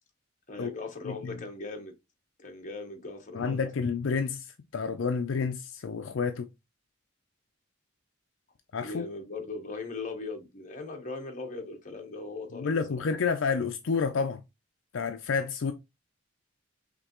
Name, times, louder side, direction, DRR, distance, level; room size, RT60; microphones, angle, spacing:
voice 1, 0.5-1.9 2.4-3.7 8.8-12.8 13.1-13.2, left 3 dB, 40° left, 1.1 m, -39 dB
voice 2, 3.3-6.5 8.7-9.0 12.5-14.4 14.9-15.7, left 5 dB, 70° left, 0.5 m, -29 dB
5.2 x 3.2 x 3.0 m
head